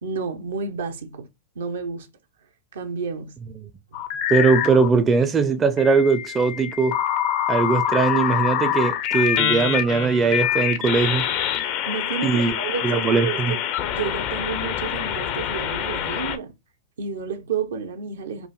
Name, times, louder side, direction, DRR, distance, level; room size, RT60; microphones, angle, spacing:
voice 1, 0.0-1.3 1.6-2.1 2.7-3.4 11.6-13.6 13.9-16.5 17.0-18.5, right 5 dB, 70° right, 0.8 m, -30 dB
sound 1, 3.9-4.9 5.8-16.4, left 10 dB, 45° left, 0.6 m, -25 dB
voice 2, 4.3-6.9 7.5-11.2 12.2-12.5 12.8-13.5, right 4 dB, 20° right, 0.5 m, -20 dB
4.7 x 2.5 x 2.3 m
figure-of-eight pair, 100°, 0 cm